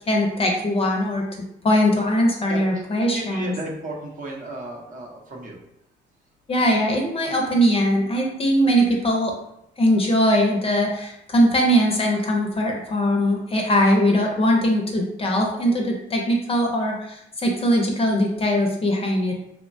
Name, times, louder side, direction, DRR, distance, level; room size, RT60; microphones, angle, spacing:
voice 1, 0.1-1.2 1.6-3.5 6.5-9.3 9.8-19.4, equal, 30° left, 0 dB, 0.5 m, -21 dB
voice 2, 2.1-2.8 3.1-5.6, right 1 dB, 40° right, -1 dB, 0.7 m, -34 dB
2.9 x 2.1 x 2.6 m, 0.80 s
cardioid pair, 90°, 20 cm